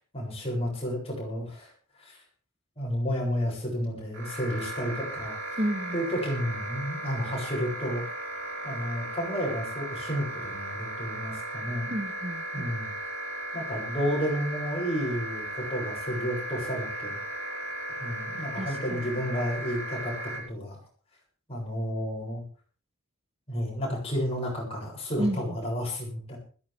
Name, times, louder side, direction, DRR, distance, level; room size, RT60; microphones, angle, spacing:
voice 1, 0.1-1.7 2.0-2.2 2.8-5.6 5.9-8.0 8.6-11.9 12.5-12.9 13.5-17.2 18.0-20.1 20.5-20.8 21.5-22.4 23.5-26.4, equal, 25° left, -2 dB, 7.5 m, -31 dB
sound 1, 4.1-20.4, right 1 dB, 60° right, 6.1 m, -36 dB
voice 2, 5.6-6.1 11.9-12.7 18.6-19.0 25.2-25.6, right 1 dB, 25° right, 6 dB, 1.3 m, -31 dB
20.5 x 15.0 x 3.6 m, 0.39 s
head